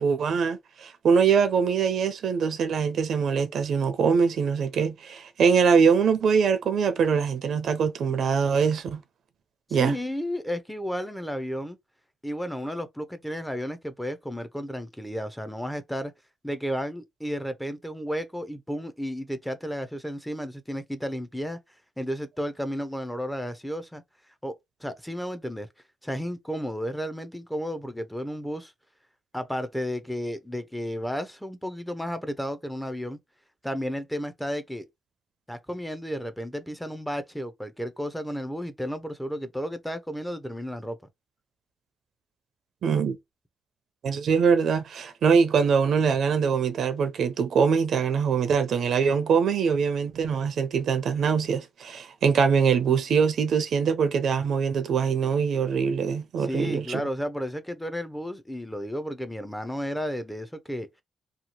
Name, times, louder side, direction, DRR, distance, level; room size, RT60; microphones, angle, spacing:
voice 1, 0.0-9.0 9.7-10.0 42.8-43.2 44.0-57.0, right 6 dB, 65° right, 0.5 m, -23 dB
voice 2, 9.8-11.8 12.2-16.1 16.4-21.6 22.0-24.0 24.4-24.5 24.8-25.7 26.0-28.7 29.3-33.2 33.6-34.9 35.5-41.0 56.4-60.9, equal, 5° left, 0.4 m, -32 dB
2.8 x 2.3 x 2.8 m
cardioid pair, 125°, 0 cm